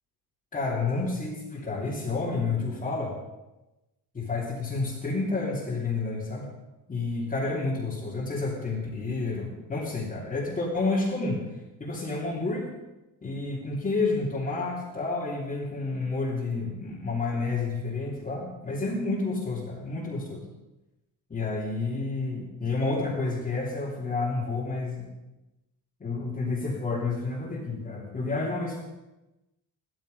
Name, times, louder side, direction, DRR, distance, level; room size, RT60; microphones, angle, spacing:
voice 1, 0.5-3.1 4.1-6.5 6.9-11.4 11.8-12.7 13.2-20.4 21.3-25.1 26.0-28.8, left 3 dB, 20° left, -6 dB, 3.0 m, -30 dB
15.0 x 13.0 x 5.4 m, 1.0 s
cardioid pair, 140°, 39 cm